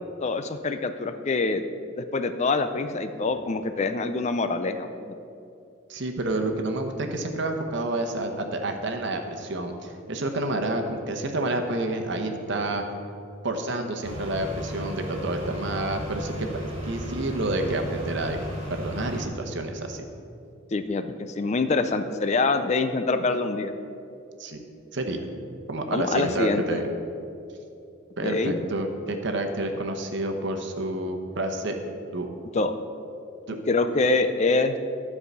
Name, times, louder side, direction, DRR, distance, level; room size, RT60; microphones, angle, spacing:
voice 1, 0.2-1.6 2.0-5.1 20.7-23.7 25.9-26.6 28.2-28.6 32.5-32.7 33.7-34.8, left 3 dB, 35° left, 9 dB, 0.4 m, -25 dB
voice 2, 5.9-12.8 13.4-16.5 16.8-18.4 18.7-20.0 24.4-24.6 24.9-25.2 25.7-26.8 28.2-31.8 32.1-32.3 33.5-33.6, right 2 dB, 55° right, 5 dB, 1.0 m, -29 dB
sound 1, 14.0-19.2, equal, 30° right, 2.4 m, -34 dB
13.0 x 4.8 x 6.7 m, 2.6 s
head